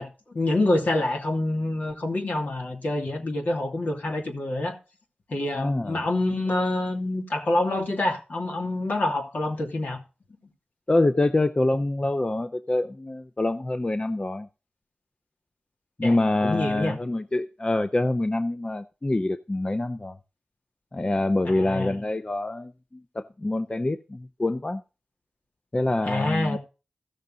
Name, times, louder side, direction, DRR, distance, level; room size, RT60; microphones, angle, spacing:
voice 1, 0.0-4.8 5.3-10.0 16.0-16.2 16.4-17.0 21.4-22.0 26.1-26.6, left 2 dB, 65° left, 2.7 m, -26 dB
voice 2, 5.5-6.0 10.9-14.5 16.0-20.2 20.9-24.8 25.7-26.6, left 2 dB, 30° left, 0.7 m, -26 dB
15.0 x 6.6 x 3.9 m
cardioid pair, 55°, 3 cm